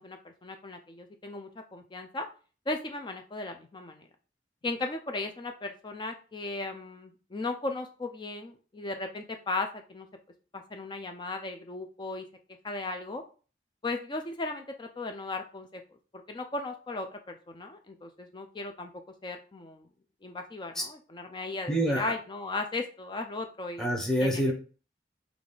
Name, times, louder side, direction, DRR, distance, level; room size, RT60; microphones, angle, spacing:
voice 1, 0.0-2.3 2.7-4.0 4.6-10.1 10.5-12.2 12.6-13.2 13.8-15.8 16.1-18.9 19.2-19.9 20.2-24.4, left 2 dB, 25° left, 5 dB, 0.4 m, -36 dB
voice 2, 21.7-22.1 23.8-24.5, equal, 5° left, 0 dB, 0.8 m, -26 dB
5.1 x 2.4 x 3.8 m, 0.37 s
head